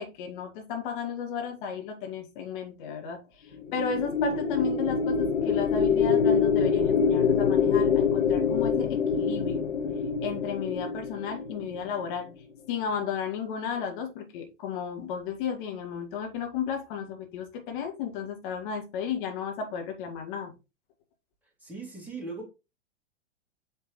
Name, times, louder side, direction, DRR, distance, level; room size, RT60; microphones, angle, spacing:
voice 1, 0.0-3.2 3.7-9.7 10.2-12.3 12.7-20.5, left 7 dB, 45° left, 2.1 m, -34 dB
sound 1, 3.5-12.0, left 6 dB, 70° left, 0.7 m, -25 dB
voice 2, 21.6-22.5, right 3 dB, 5° right, 2.4 m, -39 dB
8.4 x 4.3 x 3.2 m
figure-of-eight pair, 100°, 36 cm